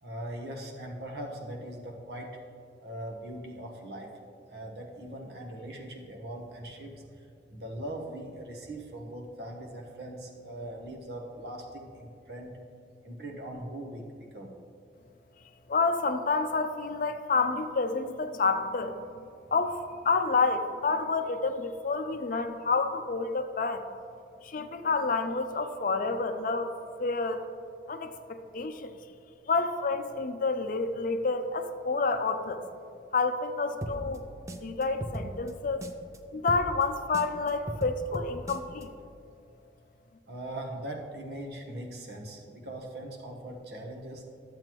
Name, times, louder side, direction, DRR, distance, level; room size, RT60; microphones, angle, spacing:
voice 1, 0.0-2.3 2.8-4.1 4.5-12.6 13.0-14.0 14.3-14.5 40.3-44.2, right 1 dB, 60° right, 1 dB, 1.1 m, -40 dB
voice 2, 15.7-19.3 19.5-23.8 24.4-26.7 27.0-27.4 27.9-28.9 29.5-32.6 33.1-34.2 34.6-35.8 36.3-38.9, left 4 dB, 50° left, 8 dB, 0.5 m, -29 dB
sound 1, 33.8-36.2 36.5-38.8, right 1 dB, 15° right, 0.4 m, -38 dB
12.0 x 7.6 x 3.0 m, 2.4 s
head